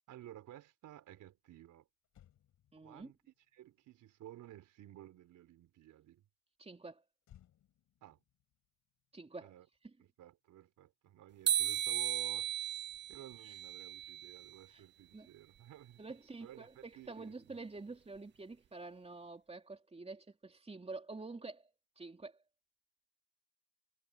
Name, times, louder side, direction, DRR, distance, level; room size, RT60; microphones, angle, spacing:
voice 1, 0.1-1.9 2.8-3.2 3.5-6.2 8.0-8.2 9.4-9.7 10.0-12.5 13.1-16.0 16.4-17.6, right 13 dB, 80° right, 4.2 m, -54 dB
Motor vehicle (road), 2.0-5.6 7.2-9.8 10.1-10.3, left 11 dB, 75° left, 6.3 m, -68 dB
voice 2, 2.7-3.1 6.6-7.0 9.1-9.5 9.8-9.9 13.4-13.5 14.7-14.8 15.1-15.3 16.0-21.7 22.0-22.4, right 3 dB, 20° right, 3.4 m, -48 dB
sound 1, 11.5-14.6, right 11 dB, 40° right, 0.4 m, -36 dB
cardioid pair, 90°, 30 cm